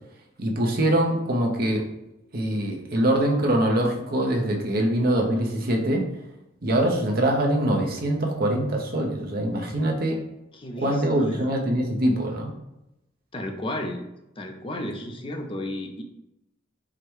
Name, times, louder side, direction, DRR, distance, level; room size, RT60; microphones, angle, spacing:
voice 1, 0.4-1.8 2.3-6.0 6.6-10.2 10.8-12.5, right 1 dB, 50° right, 1 dB, 0.8 m, -23 dB
voice 2, 10.5-11.5 13.3-14.0 14.4-16.0, left 1 dB, 30° left, 4 dB, 0.6 m, -33 dB
4.8 x 2.2 x 4.5 m, 0.88 s
head